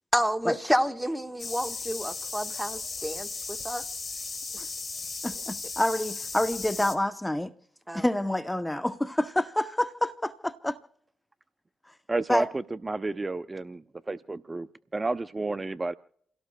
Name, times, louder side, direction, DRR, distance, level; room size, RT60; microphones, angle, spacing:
voice 1, 0.1-3.9 7.9-8.0, equal, 5° right, 1.4 m, -29 dB
sound 1, 1.4-7.0, left 4 dB, 40° left, 2.6 m, -36 dB
voice 2, 5.2-7.5 7.9-10.8 12.3-12.5, left 1 dB, 10° left, 0.7 m, -28 dB
voice 3, 12.1-15.9, right 2 dB, 30° right, 0.5 m, -31 dB
29.0 x 17.0 x 2.2 m
hypercardioid pair, 45°, 0 cm